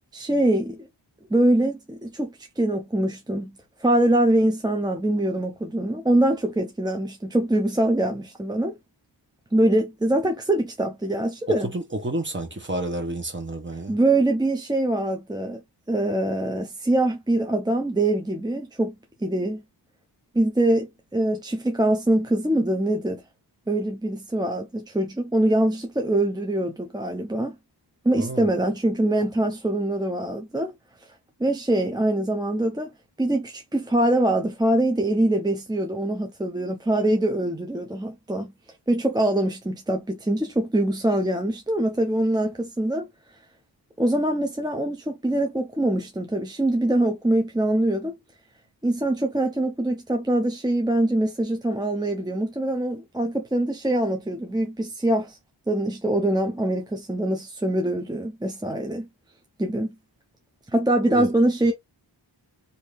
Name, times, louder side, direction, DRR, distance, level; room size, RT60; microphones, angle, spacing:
voice 1, 0.1-0.9 1.3-3.5 3.8-8.7 9.5-11.7 13.9-15.6 15.9-18.9 19.2-19.6 20.3-23.2 23.7-27.6 28.0-30.7 31.4-32.9 33.2-38.5 38.9-43.1 44.0-48.2 48.8-55.4 55.7-59.1 59.6-59.9 60.7-61.7, right 1 dB, 10° right, 0.4 m, -23 dB
voice 2, 11.5-13.9 28.2-28.4 61.1-61.3, right 1 dB, 25° right, 1.0 m, -30 dB
2.7 x 2.6 x 3.2 m
wide cardioid pair, 105°, 45 cm